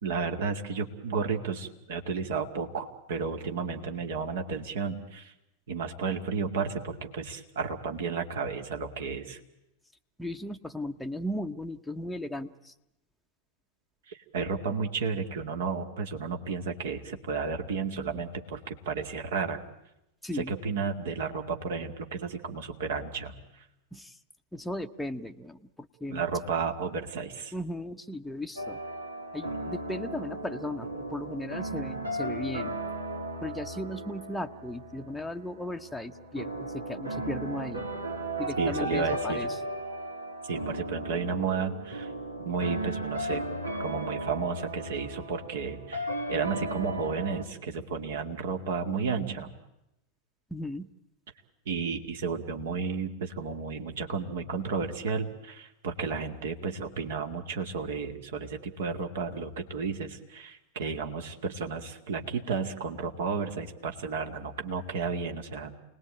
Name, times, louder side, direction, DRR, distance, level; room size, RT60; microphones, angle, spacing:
voice 1, 0.0-5.3 5.7-9.4 14.1-19.6 20.3-23.6 26.1-27.5 38.6-39.5 40.5-42.1 42.4-43.4 43.8-49.5 51.7-65.7, right 5 dB, 60° right, 5 dB, 2.3 m, -32 dB
voice 2, 10.2-12.7 20.2-20.6 23.9-24.2 24.5-26.2 27.5-28.8 29.3-32.7 33.4-37.8 38.4-39.6 50.5-50.9, left 1 dB, ahead, 3 dB, 0.9 m, -36 dB
sound 1, 28.6-47.4, right 1 dB, 80° right, 2.2 m, -36 dB
28.5 x 19.5 x 9.0 m, 0.89 s
figure-of-eight pair, 90°, 0 cm